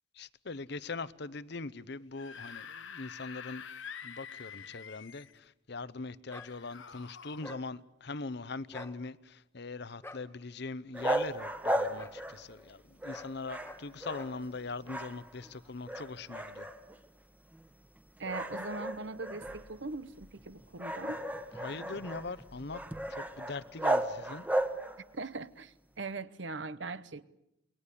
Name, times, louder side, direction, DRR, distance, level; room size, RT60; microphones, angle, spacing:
voice 1, 0.2-3.6 4.0-16.7 21.5-22.8 23.1-24.4, left 3 dB, 60° left, 0.9 m, -41 dB
Screaming / Screech, 2.0-5.4 6.3-7.4, left 7 dB, 80° left, 1.2 m, -47 dB
sound 1, 6.3-6.5 7.4-7.6 8.7-9.0 10.0-10.3 11.0-11.3 11.9-12.2 13.1-13.3 13.6-13.8 14.1-14.4, left 2 dB, 10° left, 1.7 m, -47 dB
sound 2, 10.9-12.7 13.0-14.6 14.8-15.5 15.9-17.1 17.5-17.7 18.2-25.1, right 1 dB, 10° right, 1.3 m, -35 dB
voice 2, 18.2-21.2 25.1-27.2, right 3 dB, 70° right, 1.0 m, -40 dB
28.5 x 21.0 x 8.5 m
head